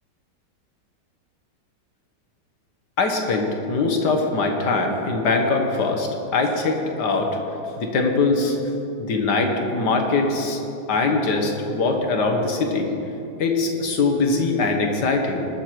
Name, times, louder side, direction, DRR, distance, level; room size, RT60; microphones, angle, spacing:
voice 1, 3.0-7.3 7.8-8.6 9.0-10.6 10.9-12.9 13.4-15.5, left 3 dB, 70° left, 2 dB, 1.8 m, -22 dB
20.5 x 6.8 x 4.5 m, 2.9 s
omnidirectional pair, 1.9 m